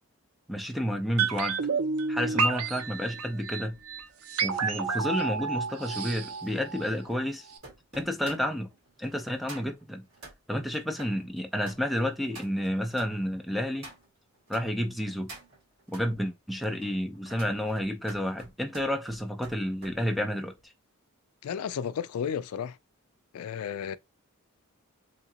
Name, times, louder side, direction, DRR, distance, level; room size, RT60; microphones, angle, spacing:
voice 1, 0.5-1.6 2.1-3.8 4.4-7.5 7.9-8.7 9.0-10.0 10.5-13.9 14.5-15.3 15.9-20.7, equal, ahead, 0.5 m, -30 dB
sound 1, 1.2-7.2 7.5-7.6, right 5 dB, 85° right, 0.7 m, -30 dB
sound 2, 4.0-14.7 15.0-16.1 16.6-20.0 20.3-20.6, right 2 dB, 60° right, 2.0 m, -50 dB
voice 2, 21.4-22.8 23.3-24.0, left 8 dB, 80° left, 0.3 m, -33 dB
3.8 x 2.8 x 2.8 m
head